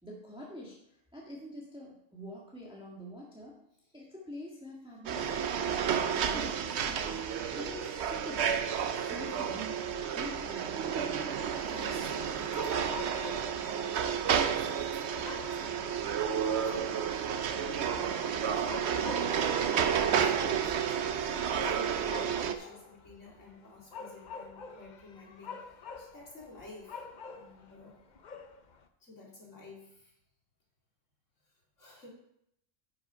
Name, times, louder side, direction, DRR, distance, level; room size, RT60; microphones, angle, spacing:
voice 1, 0.0-3.6 3.9-7.2 7.5-9.9 10.1-10.9, equal, 5° right, -4 dB, 1.7 m, -46 dB
sound 1, 5.1-22.5, right 7 dB, 60° right, 0.9 m, -31 dB
sound 2, 10.8-28.9, left 5 dB, 45° left, 0.7 m, -48 dB
voice 2, 11.6-28.0 29.0-30.1 31.4-32.1, left 3 dB, 70° left, -3 dB, 2.9 m, -53 dB
9.6 x 6.5 x 5.0 m, 0.76 s
omnidirectional pair, 1.4 m